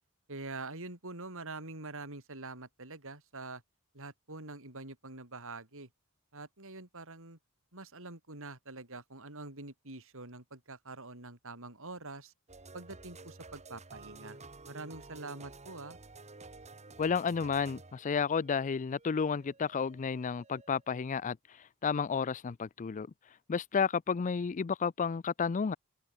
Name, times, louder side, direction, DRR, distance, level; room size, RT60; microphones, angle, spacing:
voice 1, 0.3-3.6 3.9-5.9 6.3-7.4 7.7-12.3 12.7-14.4 14.7-16.0, right 3 dB, 65° right, 5.8 m, -45 dB
sound 1, 12.5-21.0, right 3 dB, 30° right, 2.5 m, -52 dB
voice 2, 17.0-21.4 21.8-23.1 23.5-25.8, left 6 dB, 35° left, 0.4 m, -31 dB
open air
head